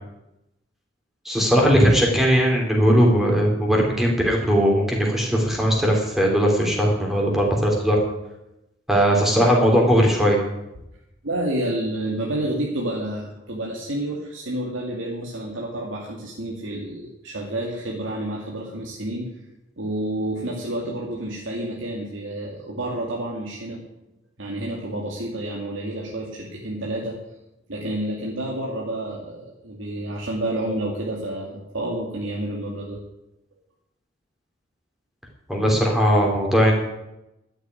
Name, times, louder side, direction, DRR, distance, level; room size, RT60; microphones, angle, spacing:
voice 1, 1.2-8.0 8.9-10.4 35.5-36.7, equal, ahead, -1 dB, 3.3 m, -19 dB
voice 2, 11.2-19.3 19.8-23.8 24.4-27.2 27.7-33.0, right 1 dB, 85° right, -3 dB, 2.5 m, -29 dB
12.5 x 8.0 x 9.8 m, 0.91 s
head